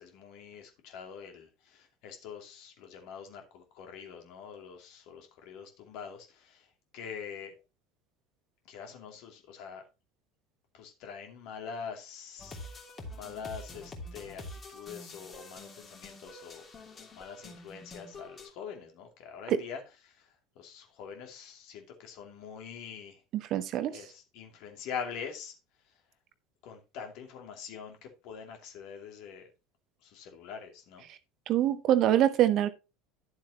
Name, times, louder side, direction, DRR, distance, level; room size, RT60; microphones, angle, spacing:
voice 1, 0.0-6.7 6.9-7.5 8.7-9.8 10.7-12.6 13.1-14.4 14.7-20.3 20.6-23.2 23.9-25.5 26.6-29.5 30.0-31.1, left 6 dB, 55° left, 2.6 m, -44 dB
sound 1, 12.4-18.5, left 2 dB, 30° left, 3.0 m, -46 dB
voice 2, 23.4-24.0 31.5-32.7, right 11 dB, 45° right, 1.0 m, -25 dB
11.5 x 7.4 x 2.9 m
figure-of-eight pair, 70°, 0 cm